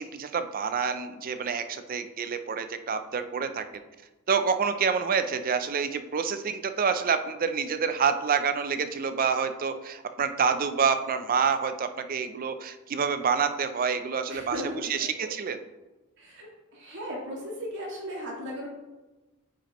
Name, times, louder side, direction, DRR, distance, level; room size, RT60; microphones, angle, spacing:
voice 1, 0.0-3.6 4.3-15.6, right 6 dB, 40° right, 10 dB, 0.4 m, -27 dB
voice 2, 14.3-14.9 15.2-15.3 16.2-18.7, equal, 55° right, -2 dB, 2.1 m, -36 dB
8.5 x 5.3 x 3.0 m, 1.1 s
head